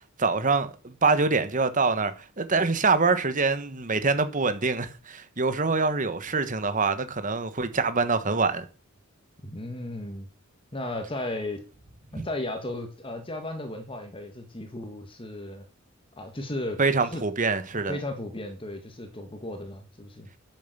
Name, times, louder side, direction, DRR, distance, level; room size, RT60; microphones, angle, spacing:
voice 1, 0.2-2.1 2.4-8.6 12.1-12.2 16.8-18.0, right 4 dB, 40° right, 1.3 m, -25 dB
voice 2, 9.4-10.3 10.7-11.7 12.1-15.7 16.2-17.2 17.9-20.3, left 1 dB, 25° left, 1.7 m, -35 dB
10.0 x 7.1 x 6.8 m
head